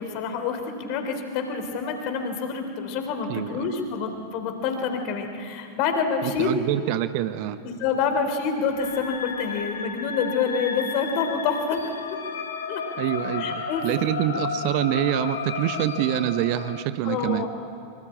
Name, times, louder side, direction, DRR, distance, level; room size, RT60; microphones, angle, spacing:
voice 1, 0.0-6.5 7.8-11.9 12.7-12.8 13.3-13.9 17.0-17.5, left 5 dB, 45° left, 6 dB, 3.5 m, -27 dB
voice 2, 3.3-3.7 6.2-7.6 13.0-17.5, right 12 dB, 45° right, 12 dB, 1.0 m, -26 dB
sound 1, 8.7-16.8, left 5 dB, 70° left, 2.5 m, -33 dB
24.0 x 23.5 x 8.7 m, 2.4 s
figure-of-eight pair, 90°, 0 cm